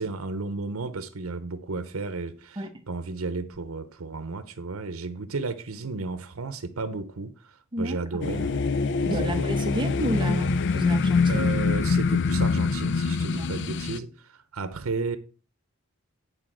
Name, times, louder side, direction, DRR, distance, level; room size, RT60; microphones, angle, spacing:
voice 1, 0.0-8.5 9.2-9.5 11.3-15.2, right 3 dB, 90° right, 0.8 m, -33 dB
sound 1, 8.2-14.0, left 4 dB, 60° left, 0.5 m, -25 dB
voice 2, 9.0-11.5 13.3-13.5, equal, 25° right, 1.1 m, -30 dB
10.0 x 4.0 x 6.1 m
head